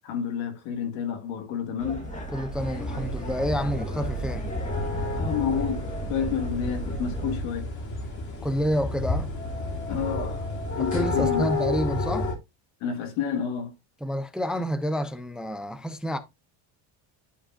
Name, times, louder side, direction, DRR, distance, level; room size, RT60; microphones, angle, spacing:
voice 1, 0.0-2.1 5.1-7.7 9.9-10.4 10.8-11.5 12.8-13.7, left 7 dB, 85° left, 2.1 m, -30 dB
sound 1, 1.8-7.4, right 2 dB, 15° left, 1.9 m, -35 dB
voice 2, 2.3-4.5 8.4-9.3 10.9-12.3 14.0-16.2, equal, ahead, 0.5 m, -28 dB
sound 2, 2.6-12.3, left 2 dB, 40° left, 2.7 m, -31 dB
11.5 x 4.7 x 2.6 m
cardioid pair, 140°, 47 cm